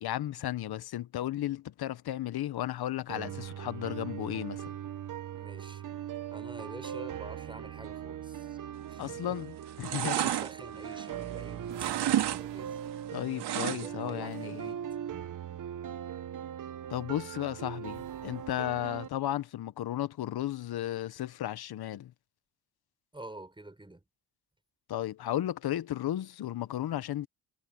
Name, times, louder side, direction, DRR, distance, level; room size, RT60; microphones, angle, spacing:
voice 1, 0.0-4.7 9.0-10.3 13.1-14.7 16.9-22.1 24.9-27.3, left 13 dB, 60° left, 1.3 m, -34 dB
sound 1, 3.1-19.1, right 10 dB, 50° right, 1.1 m, -40 dB
voice 2, 5.4-5.8 6.3-8.6 8.9-9.4 9.9-12.8 13.7-14.8 23.1-24.0, right 2 dB, 10° right, 5.9 m, -47 dB
sound 2, 9.0-9.3 9.6-11.4 11.7-12.4 12.7-14.1 14.4-14.5, right 11 dB, 70° right, 2.5 m, -31 dB
sound 3, 11.0-14.8 17.8-19.2, right 15 dB, 85° right, 5.1 m, -53 dB
cardioid pair, 80°, 42 cm